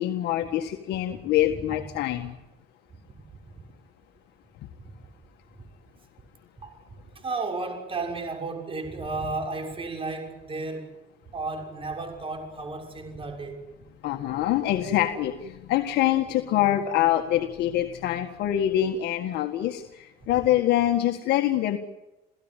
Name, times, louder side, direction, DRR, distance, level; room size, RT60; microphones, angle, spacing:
voice 1, 0.0-2.3 14.0-21.8, left 12 dB, 80° left, 1.8 m, -25 dB
voice 2, 1.5-1.8 3.5-3.6 6.6-6.8 7.1-11.0 11.3-13.6 20.2-20.3, right 3 dB, 30° right, 6.2 m, -33 dB
29.0 x 16.5 x 9.2 m
cardioid pair, 110°, 17 cm